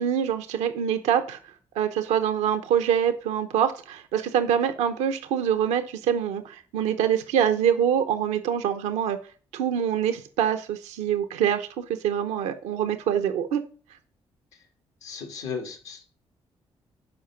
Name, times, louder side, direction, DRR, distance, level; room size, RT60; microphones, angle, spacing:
voice 1, 0.0-1.4 1.7-9.2 9.5-13.6, right 9 dB, 90° right, 8 dB, 0.8 m, -25 dB
voice 2, 15.0-16.0, left 5 dB, 85° left, 3 dB, 2.2 m, -35 dB
12.0 x 5.1 x 5.7 m, 0.40 s
supercardioid pair, 50°, 11 cm